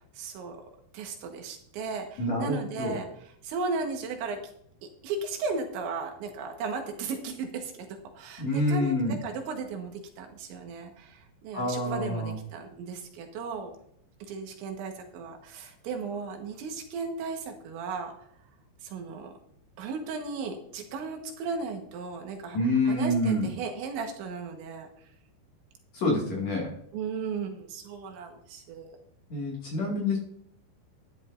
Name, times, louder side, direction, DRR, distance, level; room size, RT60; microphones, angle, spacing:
voice 1, 0.2-0.6 0.9-4.4 4.8-13.7 14.3-18.1 18.8-19.3 19.8-24.9 26.9-29.0, right 4 dB, 80° right, 3 dB, 3.7 m, -36 dB
voice 2, 2.2-3.0 8.4-9.2 11.5-12.3 22.5-23.5 25.9-26.7 29.3-30.2, left 1 dB, 45° left, -3 dB, 3.0 m, -27 dB
12.5 x 11.0 x 2.7 m, 0.69 s
omnidirectional pair, 5.4 m